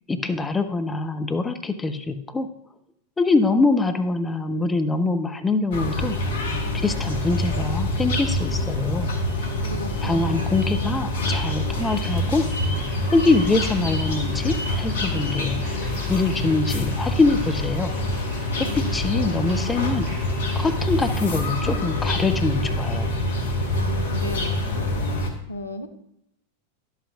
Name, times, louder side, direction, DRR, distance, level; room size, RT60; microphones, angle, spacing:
voice 1, 0.1-2.5 3.2-6.2 6.7-9.1 10.0-12.4 13.1-15.6 16.1-17.9 18.5-18.7 18.9-20.1 20.6-23.1, left 3 dB, 10° left, 7 dB, 0.6 m, -24 dB
sound 1, 5.7-25.3, left 1 dB, 60° left, 1.2 m, -26 dB
voice 2, 9.6-10.6 18.6-19.5 23.7-25.9, left 2 dB, 80° left, 7 dB, 0.7 m, -36 dB
sound 2, 11.7-21.2, right 1 dB, 25° right, 2.6 m, -44 dB
11.0 x 8.1 x 2.3 m, 0.80 s
figure-of-eight pair, 90°, 0 cm